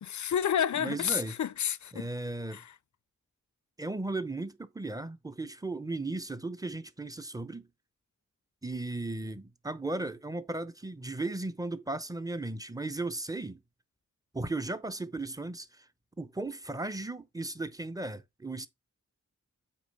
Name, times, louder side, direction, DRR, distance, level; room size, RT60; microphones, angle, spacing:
voice 1, 0.0-2.1 2.5-2.7, left 9 dB, 65° left, 0.5 m, -30 dB
voice 2, 0.8-1.3 1.9-2.6 3.8-7.7 8.6-13.6 14.3-15.9 16.2-18.7, right 2 dB, 10° right, 0.7 m, -36 dB
8.5 x 3.0 x 5.4 m
wide cardioid pair, 85°, 32 cm